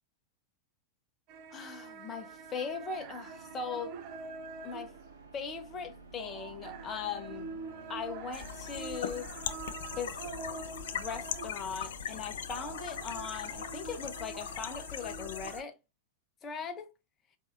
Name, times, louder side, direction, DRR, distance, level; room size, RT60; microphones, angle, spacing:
sound 1, 1.3-11.9 12.2-15.6, right 5 dB, 45° right, 0.4 m, -46 dB
voice 1, 1.5-4.0 4.6-4.9 5.3-7.5 7.9-9.3 9.9-10.2 10.9-15.8 16.4-16.9, left 6 dB, 25° left, 0.8 m, -39 dB
sound 2, 2.0-14.9, right 2 dB, 80° right, 0.8 m, -53 dB
sound 3, 8.3-15.6, left 8 dB, 60° left, 0.4 m, -40 dB
4.7 x 2.7 x 2.5 m
figure-of-eight pair, 90°, 0 cm